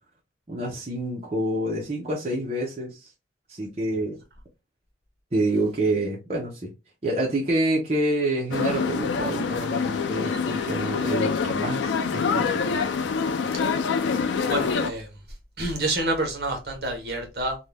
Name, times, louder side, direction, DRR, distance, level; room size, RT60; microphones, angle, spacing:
voice 1, 0.5-3.1 3.5-4.2 5.3-6.7 7.0-12.6, right 1 dB, 35° right, 0.7 m, -27 dB
sound 1, 8.5-14.9, left 5 dB, 80° left, 0.4 m, -25 dB
voice 2, 14.5-15.1 15.6-17.6, right 2 dB, 55° right, 0.9 m, -28 dB
2.6 x 2.2 x 3.2 m
head